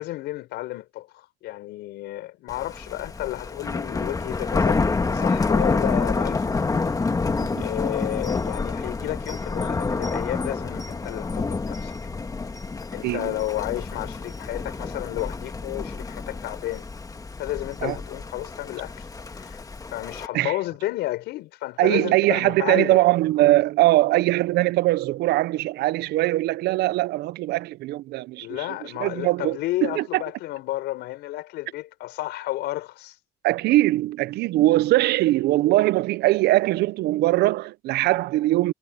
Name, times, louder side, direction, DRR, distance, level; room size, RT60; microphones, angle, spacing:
voice 1, 0.0-6.5 7.6-11.9 12.9-16.8 17.4-19.1 19.3-19.6 19.9-23.0 28.4-33.1, left 16 dB, 85° left, 5.0 m, -32 dB
Thunder, 2.5-20.3, left 4 dB, 20° left, 1.5 m, -28 dB
voice 2, 13.0-13.3 17.8-18.0 20.3-20.6 21.8-30.2 33.4-38.7, right 17 dB, 75° right, 0.6 m, -21 dB
cardioid pair, 110°, 17 cm